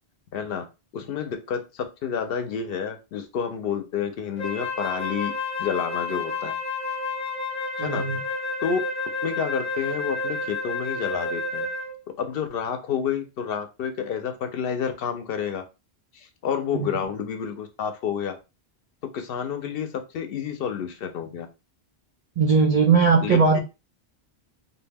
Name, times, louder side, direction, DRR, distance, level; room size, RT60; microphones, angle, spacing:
voice 1, 0.3-0.6 0.9-5.3 5.6-6.5 7.8-8.0 8.6-8.8 9.2-11.7 12.2-15.6 16.1-18.4 19.1-21.5 23.2-23.6, left 7 dB, 65° left, 7 dB, 0.7 m, -29 dB
Wind instrument woodwind instrument, 4.4-12.0, left 3 dB, 5° left, 0.6 m, -30 dB
voice 2, 7.8-8.2 16.7-16.9 22.4-23.6, right 5 dB, 50° right, 0 dB, 0.4 m, -19 dB
2.3 x 2.2 x 3.3 m, 0.28 s
omnidirectional pair, 1.1 m